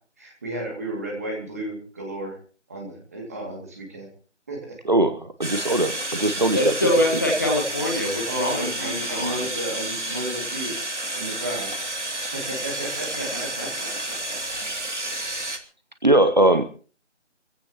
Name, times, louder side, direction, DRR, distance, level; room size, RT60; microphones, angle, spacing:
voice 1, 0.2-2.4 2.7-4.1 4.5-4.7 8.2-10.7 11.1-11.7 12.3-13.7, right 1 dB, 15° right, 0 dB, 2.3 m, -33 dB
voice 2, 4.9-6.7 16.0-16.6, right 1 dB, 40° right, 9 dB, 0.9 m, -20 dB
sound 1, 5.4-15.6, right 1 dB, 75° right, 2.8 m, -30 dB
voice 3, 6.5-9.5 13.2-14.2, left 1 dB, 15° left, -1 dB, 1.4 m, -25 dB
24.5 x 15.5 x 3.0 m, 0.39 s
figure-of-eight pair, 165°, 36 cm